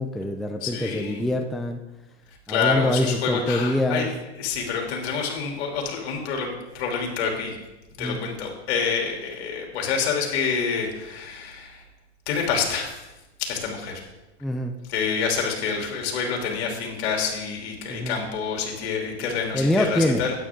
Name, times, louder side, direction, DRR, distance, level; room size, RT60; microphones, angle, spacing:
voice 1, 0.0-1.8 2.5-4.1 8.0-8.2 14.4-14.7 17.9-18.2 19.5-20.2, left 1 dB, ahead, 4 dB, 0.4 m, -25 dB
voice 2, 0.6-1.2 2.5-7.6 8.0-11.8 12.3-13.0 13.4-13.9 14.9-20.3, left 6 dB, 65° left, 1 dB, 3.2 m, -27 dB
12.5 x 9.3 x 3.7 m, 1.0 s
supercardioid pair, 135°, 34 cm